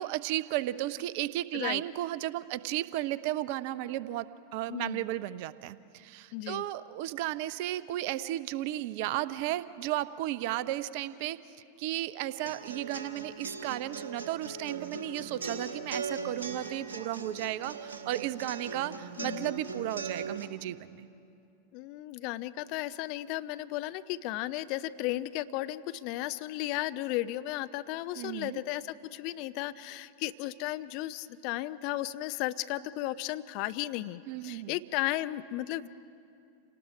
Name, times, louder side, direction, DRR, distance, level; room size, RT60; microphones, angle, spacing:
voice 1, 0.0-4.3 4.5-11.4 11.8-21.1 28.2-28.6 34.3-34.8, right 14 dB, 45° right, 17 dB, 0.5 m, -34 dB
voice 2, 4.7-5.1 6.3-6.6 19.2-19.5 21.7-35.9, left 16 dB, 45° left, 13 dB, 0.5 m, -35 dB
sound 1, 12.5-20.4, right 4 dB, 70° right, 1.6 m, -39 dB
28.0 x 18.5 x 5.0 m, 2.5 s
figure-of-eight pair, 90°, 0 cm